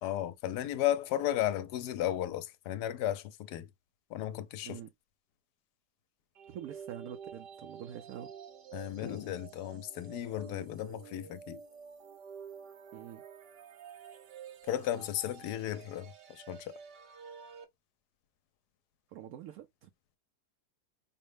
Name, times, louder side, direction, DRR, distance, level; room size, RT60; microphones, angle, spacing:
voice 1, 0.0-3.7 4.1-4.8 8.7-11.6 14.7-16.7, left 12 dB, 80° left, 1.1 m, -34 dB
sound 1, 6.3-17.6, right 7 dB, 85° right, 1.4 m, -50 dB
voice 2, 6.5-8.3 12.9-13.2 19.1-19.9, right 10 dB, 70° right, 1.0 m, -45 dB
5.3 x 2.1 x 3.2 m
omnidirectional pair, 1.8 m